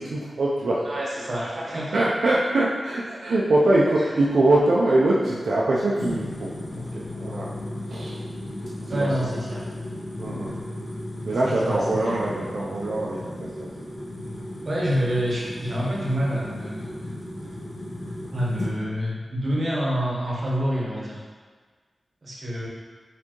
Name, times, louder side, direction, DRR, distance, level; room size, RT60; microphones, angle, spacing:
voice 1, 0.0-0.9 1.7-7.5 7.9-8.2 8.9-9.1 10.2-10.5 11.3-13.7, right 2 dB, 70° right, -6 dB, 0.4 m, -23 dB
voice 2, 0.8-2.1 8.9-9.6 11.4-12.2 14.6-17.1 18.3-21.2 22.2-22.7, equal, 40° right, -5 dB, 0.8 m, -27 dB
sound 1, 5.9-18.7, left 1 dB, 70° left, 0.9 m, -35 dB
4.3 x 2.7 x 2.9 m, 1.5 s
wide cardioid pair, 145°, 0 cm